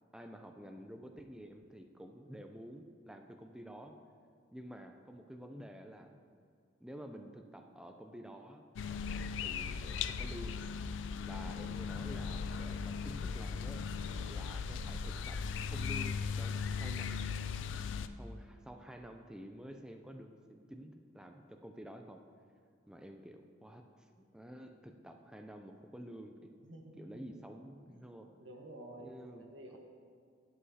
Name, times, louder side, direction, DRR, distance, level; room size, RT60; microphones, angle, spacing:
voice 1, 0.0-3.9 4.5-6.2 6.8-8.6 9.4-10.6 11.2-13.8 14.3-17.3 18.2-22.2 22.9-26.5 27.0-28.3 29.0-29.8, equal, 5° right, 4 dB, 0.4 m, -50 dB
sound 1, 8.8-18.1, left 5 dB, 80° left, 0.4 m, -38 dB
voice 2, 26.6-27.0 27.9-28.0 28.4-29.8, right 1 dB, 90° right, 1 dB, 1.2 m, -51 dB
11.0 x 7.8 x 2.8 m, 2.3 s
head